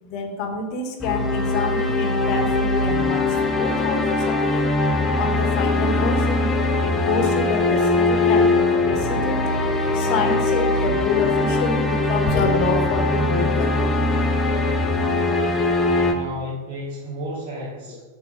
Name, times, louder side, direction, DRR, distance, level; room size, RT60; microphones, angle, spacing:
voice 1, 0.0-4.7 5.1-6.5 6.8-9.4 9.9-14.0, left 4 dB, 40° left, 3 dB, 1.4 m, -27 dB
sound 1, 1.0-16.1, left 2 dB, 15° left, 1.0 m, -21 dB
voice 2, 15.7-18.0, left 1 dB, 50° right, -6 dB, 2.8 m, -33 dB
7.0 x 4.4 x 6.4 m, 1.3 s
figure-of-eight pair, 90°, 0 cm